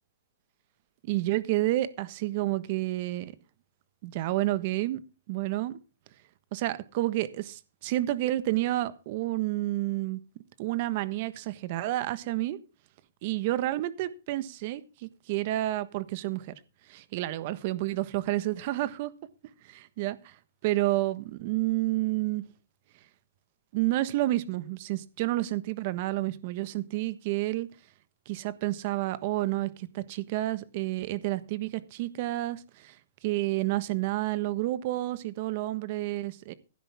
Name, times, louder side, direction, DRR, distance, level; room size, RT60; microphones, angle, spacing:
voice 1, 1.0-3.3 4.0-5.0 5.3-5.8 6.5-10.2 10.6-12.6 13.2-16.5 16.9-19.1 19.6-20.3 20.6-22.4 23.7-27.7 28.3-32.9 33.2-36.5, right 16 dB, 40° right, 1.3 m, -30 dB
16.5 x 10.0 x 3.6 m
hypercardioid pair, 155°, 0 cm